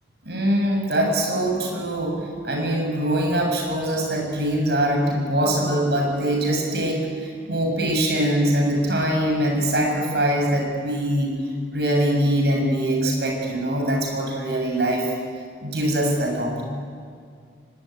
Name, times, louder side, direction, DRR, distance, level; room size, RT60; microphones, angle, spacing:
voice 1, 0.2-2.2 2.4-11.3 11.7-15.1 15.6-16.6, right 1 dB, 70° right, 1 dB, 7.4 m, -23 dB
24.0 x 22.0 x 9.5 m, 2.1 s
head